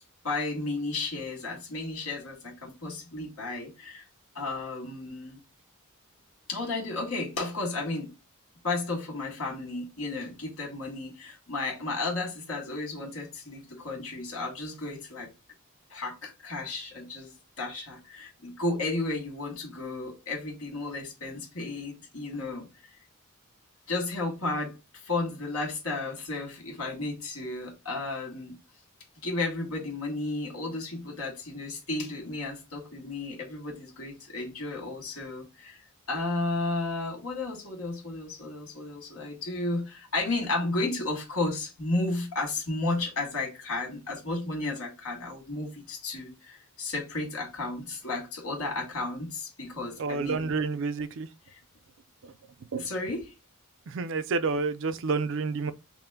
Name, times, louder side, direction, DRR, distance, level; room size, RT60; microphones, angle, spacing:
voice 1, 0.2-4.0 4.4-5.4 6.5-8.1 8.6-15.3 15.9-22.7 23.9-28.5 29.2-35.8 36.1-50.5 52.8-53.3, left 2 dB, 75° left, 2.0 m, -33 dB
voice 2, 50.0-51.3 52.2-52.3 52.7-52.9 53.9-55.7, right 4 dB, 60° right, 0.4 m, -29 dB
5.5 x 2.1 x 3.6 m
head